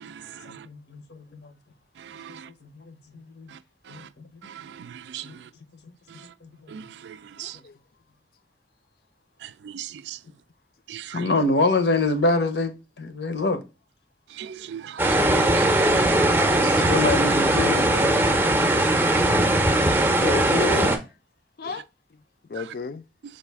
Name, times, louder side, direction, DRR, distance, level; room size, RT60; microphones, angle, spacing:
voice 1, 0.4-1.5 2.3-3.5 3.9-4.0 5.2-5.4 6.4-6.8 11.1-13.6 16.5-18.1, left 2 dB, 80° left, 0.7 m, -26 dB
voice 2, 14.4-15.2 15.5-15.7 15.9-16.3 16.6-16.9, right 9 dB, 85° right, 0.3 m, -35 dB
sound 1, 15.0-21.0, right 1 dB, 10° right, 0.5 m, -20 dB
voice 3, 19.0-19.6 20.2-21.0 21.6-21.8 22.5-23.0, left 4 dB, 55° left, 0.4 m, -31 dB
5.2 x 2.4 x 3.4 m
head